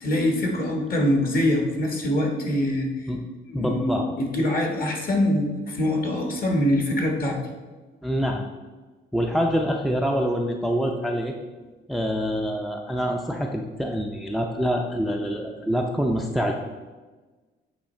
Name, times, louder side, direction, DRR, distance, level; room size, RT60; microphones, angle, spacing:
voice 1, 0.0-3.1 3.5-7.4, left 1 dB, 45° left, 2 dB, 1.4 m, -24 dB
voice 2, 3.5-4.1 8.0-8.5 9.1-11.4 11.9-16.5, equal, ahead, 2 dB, 0.5 m, -25 dB
8.6 x 3.1 x 4.3 m, 1.3 s
cardioid pair, 90°, 20 cm